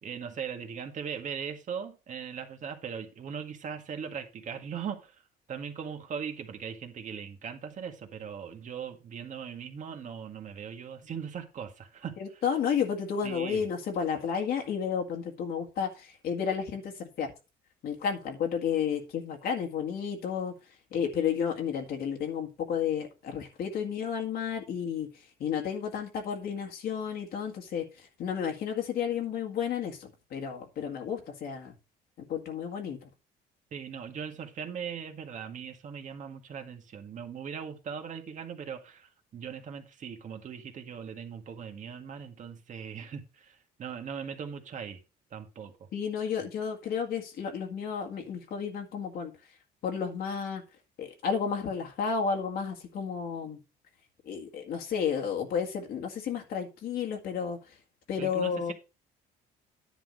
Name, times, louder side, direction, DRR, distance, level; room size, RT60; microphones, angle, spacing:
voice 1, 0.0-5.2 5.5-12.1 13.2-13.6 33.7-45.0 45.3-45.9 58.2-58.7, right 7 dB, 45° right, 1.9 m, -39 dB
voice 2, 12.2-17.3 17.8-31.7 32.3-33.1 45.9-49.3 49.8-50.6 51.0-53.6 54.2-57.8 58.1-58.7, left 7 dB, 65° left, 1.9 m, -32 dB
10.0 x 3.8 x 6.3 m
cardioid pair, 110°, 17 cm